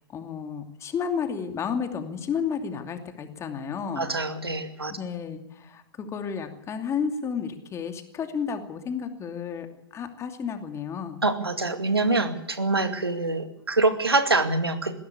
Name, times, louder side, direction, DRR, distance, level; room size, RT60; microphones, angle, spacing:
voice 1, 0.1-4.1 4.9-9.7 9.9-11.2, left 6 dB, 20° left, 6 dB, 2.6 m, -32 dB
voice 2, 3.9-4.9 11.2-15.0, right 2 dB, 85° right, 9 dB, 2.3 m, -25 dB
20.5 x 16.5 x 8.5 m, 0.82 s
figure-of-eight pair, 100°, 12 cm